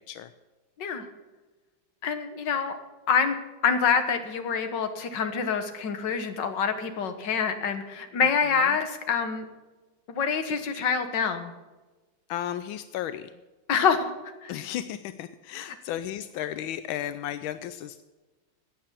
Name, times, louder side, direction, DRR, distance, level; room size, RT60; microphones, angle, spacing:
voice 1, 2.0-2.8 3.1-3.4 3.6-9.4 10.1-11.5 13.7-14.1 14.4-14.6 15.6-15.7, left 6 dB, 65° left, 7 dB, 1.9 m, -26 dB
voice 2, 12.3-13.3 14.5-18.0, left 11 dB, 85° left, 12 dB, 1.4 m, -34 dB
14.0 x 8.9 x 7.4 m, 1.2 s
omnidirectional pair, 2.2 m